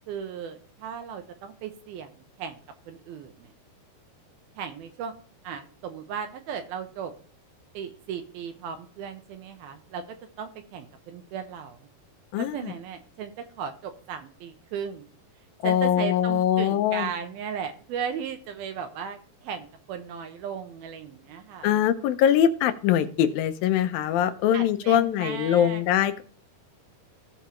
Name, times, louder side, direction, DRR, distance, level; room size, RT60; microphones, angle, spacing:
voice 1, 0.1-2.1 2.4-2.6 2.9-3.5 4.6-5.1 5.4-7.1 7.7-11.9 12.4-15.1 15.6-21.7 24.5-25.8, right 7 dB, 75° right, 7 dB, 2.8 m, -36 dB
voice 2, 12.3-12.7 15.6-17.1 21.6-26.2, left 10 dB, 75° left, 10 dB, 2.3 m, -23 dB
16.0 x 6.5 x 3.1 m, 0.44 s
omnidirectional pair, 4.5 m